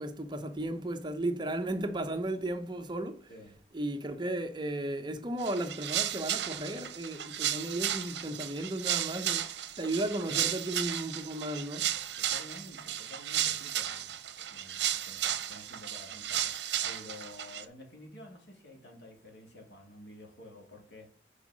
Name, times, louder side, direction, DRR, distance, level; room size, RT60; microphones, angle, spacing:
voice 1, 0.0-3.3 3.7-9.5 9.8-11.9, right 1 dB, 25° right, 0.7 m, -34 dB
voice 2, 3.3-3.6 10.2-10.5 12.1-21.1, left 1 dB, 75° left, 2.3 m, -51 dB
sound 1, 5.4-17.6, right 11 dB, 70° right, 0.7 m, -34 dB
5.7 x 4.8 x 6.1 m
head